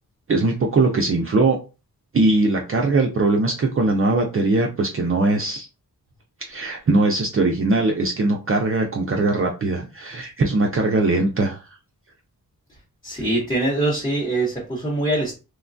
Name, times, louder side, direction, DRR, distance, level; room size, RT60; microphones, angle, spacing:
voice 1, 0.3-1.6 2.1-5.7 6.5-11.6, right 2 dB, 40° right, 1 dB, 0.4 m, -20 dB
voice 2, 13.0-15.4, right 2 dB, 10° left, -6 dB, 0.8 m, -23 dB
3.1 x 2.2 x 2.5 m, 0.30 s
wide cardioid pair, 105°, 36 cm